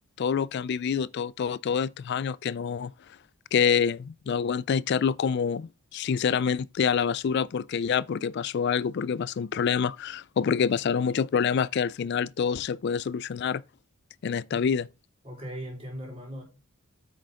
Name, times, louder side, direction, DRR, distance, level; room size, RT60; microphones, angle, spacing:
voice 1, 0.2-2.9 3.5-13.6 14.2-14.9, left 7 dB, 50° left, 0.3 m, -27 dB
voice 2, 15.2-16.4, equal, 25° right, 4.3 m, -39 dB
8.4 x 6.4 x 3.7 m
head